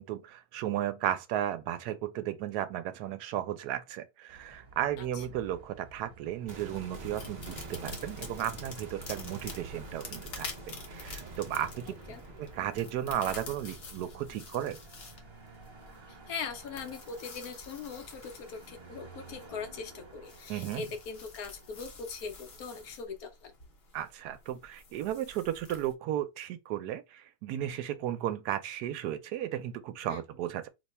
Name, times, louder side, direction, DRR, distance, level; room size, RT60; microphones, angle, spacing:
voice 1, 0.0-11.9 12.4-14.8 20.5-20.9 23.9-30.7, right 11 dB, 85° right, 1.1 m, -34 dB
sound 1, 4.3-23.0, right 4 dB, 20° right, 0.9 m, -53 dB
sound 2, 6.5-16.5 16.8-16.9, right 2 dB, 40° right, 0.6 m, -48 dB
sound 3, 7.1-25.9, left 3 dB, 50° left, 0.8 m, -48 dB
voice 2, 16.1-23.5 30.1-30.2, left 5 dB, 70° left, 1.1 m, -41 dB
2.9 x 2.2 x 4.1 m
omnidirectional pair, 1.7 m